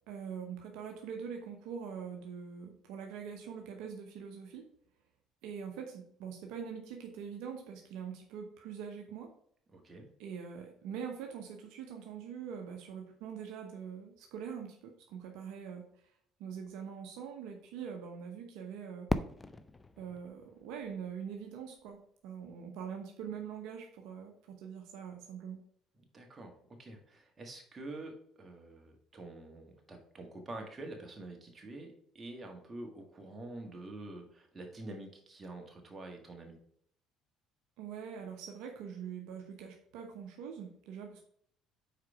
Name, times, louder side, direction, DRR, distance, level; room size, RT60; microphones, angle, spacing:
voice 1, 0.1-4.7 5.4-9.3 10.2-15.8 16.4-19.1 20.0-25.6 37.8-41.2, right 7 dB, 75° right, 3 dB, 0.9 m, -43 dB
voice 2, 9.7-10.1 26.1-36.6, right 2 dB, 30° right, 3 dB, 1.7 m, -47 dB
Fireworks, 19.1-22.0, left 2 dB, 20° left, 0.5 m, -39 dB
5.0 x 4.7 x 4.7 m, 0.65 s
hypercardioid pair, 70°, 0 cm